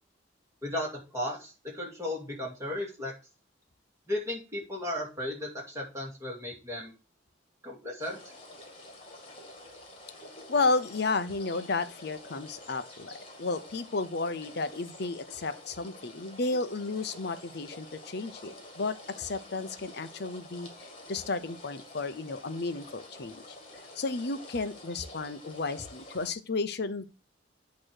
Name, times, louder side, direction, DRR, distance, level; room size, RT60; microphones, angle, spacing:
voice 1, 0.6-3.1 4.1-6.9 7.6-8.2, left 1 dB, 15° right, -3 dB, 2.5 m, -35 dB
sound 1, 8.0-26.3, left 2 dB, 30° left, 1.8 m, -49 dB
voice 2, 10.5-13.1 13.4-20.7 21.1-23.4 24.0-27.1, left 3 dB, 60° left, 11 dB, 0.7 m, -32 dB
8.8 x 3.1 x 6.4 m, 0.32 s
head